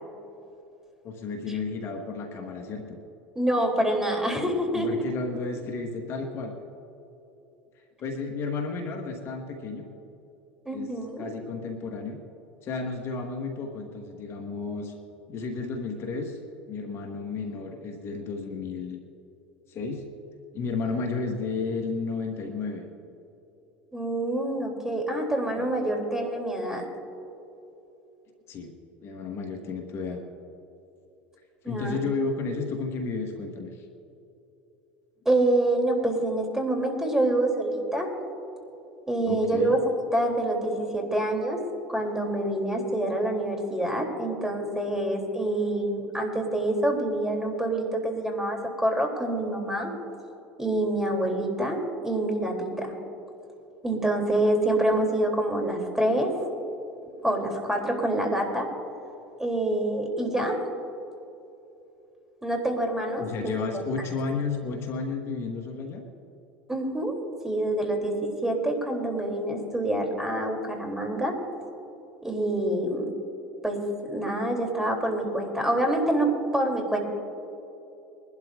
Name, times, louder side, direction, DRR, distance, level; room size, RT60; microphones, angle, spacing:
voice 1, 1.0-3.0 4.7-6.5 8.0-9.9 10.7-10.9 11.2-12.2 12.6-14.9 15.3-16.4 16.7-19.0 19.7-20.0 20.5-22.8 25.6-25.7 28.5-28.7 29.0-30.2 31.6-33.8 39.3-39.7 63.2-66.0, left 4 dB, 45° left, 3 dB, 1.7 m, -32 dB
voice 2, 3.3-5.0 10.6-11.3 23.9-26.8 31.6-32.0 35.2-38.1 39.1-39.8 40.1-41.6 41.9-49.9 50.6-51.8 52.0-52.9 53.8-56.4 57.2-58.7 59.4-60.6 62.4-63.7 66.7-67.1 67.4-71.4 72.2-73.1 73.6-77.0, right 1 dB, 10° right, 2 dB, 3.1 m, -26 dB
23.0 x 12.0 x 2.5 m, 2.9 s
hypercardioid pair, 80°, 6 cm